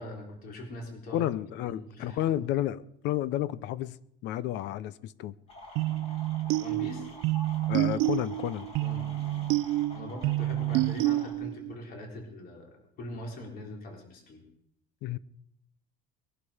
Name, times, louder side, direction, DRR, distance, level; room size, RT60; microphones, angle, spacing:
voice 1, 0.0-1.3 1.6-2.3 6.4-7.1 8.8-9.5 9.9-14.4, left 1 dB, 50° left, 2 dB, 3.8 m, -42 dB
voice 2, 1.1-5.3 7.7-8.7 15.0-15.2, left 13 dB, 70° left, 19 dB, 0.7 m, -31 dB
sound 1, 5.5-11.3, left 2 dB, 30° left, 4.2 m, -48 dB
sound 2, 5.8-11.7, right 17 dB, 90° right, 0.5 m, -29 dB
20.5 x 11.5 x 5.0 m, 0.74 s
cardioid pair, 165°, 20 cm